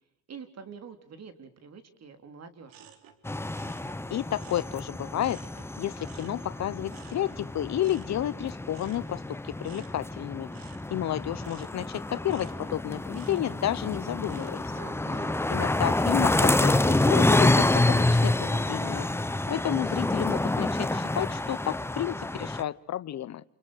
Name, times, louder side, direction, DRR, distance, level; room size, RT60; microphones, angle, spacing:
voice 1, 0.3-2.8 14.8-15.4, right 6 dB, 45° right, 10 dB, 3.9 m, -46 dB
sound 1, 2.7-5.7 6.0-14.9 15.3-15.8, right 8 dB, 75° right, 4.0 m, -54 dB
sound 2, 3.2-22.6, left 2 dB, 5° left, 1.1 m, -28 dB
voice 2, 4.1-5.4 5.8-10.5 10.9-14.6 15.5-19.1 19.5-23.4, left 12 dB, 50° left, 18 dB, 1.0 m, -31 dB
28.5 x 28.5 x 6.5 m, 0.71 s
cardioid pair, 90°, 35 cm